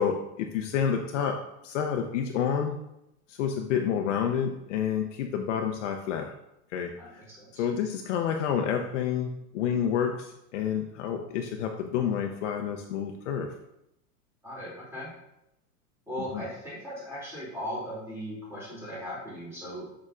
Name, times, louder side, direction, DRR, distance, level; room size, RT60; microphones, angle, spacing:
voice 1, 0.0-1.4 1.6-2.8 3.3-6.3 6.7-7.2 7.6-13.5 16.3-16.4, left 8 dB, 50° left, 4 dB, 0.6 m, -29 dB
voice 2, 7.0-7.6 14.4-15.1 16.1-20.0, equal, 5° right, -7 dB, 2.4 m, -38 dB
6.7 x 6.1 x 2.4 m, 0.84 s
supercardioid pair, 170°, 47 cm